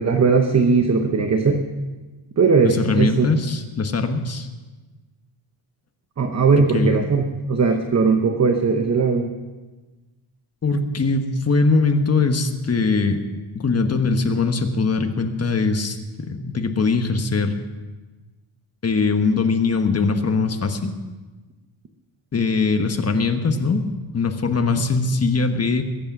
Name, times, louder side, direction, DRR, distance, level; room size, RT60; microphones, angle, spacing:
voice 1, 0.0-1.6 2.4-3.3 6.2-7.2 7.5-9.3, right 4 dB, 35° right, 5 dB, 0.9 m, -18 dB
voice 2, 2.6-4.5 6.7-7.0 10.6-13.2 13.5-17.6 18.8-20.9 22.3-23.8 24.1-25.8, left 4 dB, 30° left, 6 dB, 1.2 m, -21 dB
22.0 x 8.6 x 6.0 m, 1.2 s
wide cardioid pair, 155°, 48 cm